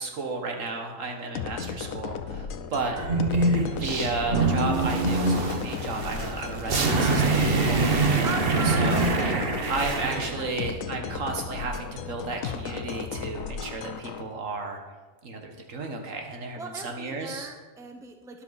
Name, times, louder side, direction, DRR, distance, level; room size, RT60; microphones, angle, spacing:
voice 1, 0.0-3.0 3.7-7.9 8.6-9.1 9.7-14.8 15.2-17.5, right 3 dB, 70° right, 3 dB, 1.7 m, -33 dB
sound 1, 1.4-14.2, left 7 dB, 80° left, 1.1 m, -35 dB
sound 2, 2.9-10.3, right 3 dB, 45° right, 1.3 m, -25 dB
voice 2, 8.2-10.5 16.6-18.4, right 4 dB, 5° right, 4 dB, 0.8 m, -39 dB
12.5 x 10.5 x 4.1 m, 1.3 s
omnidirectional pair, 1.4 m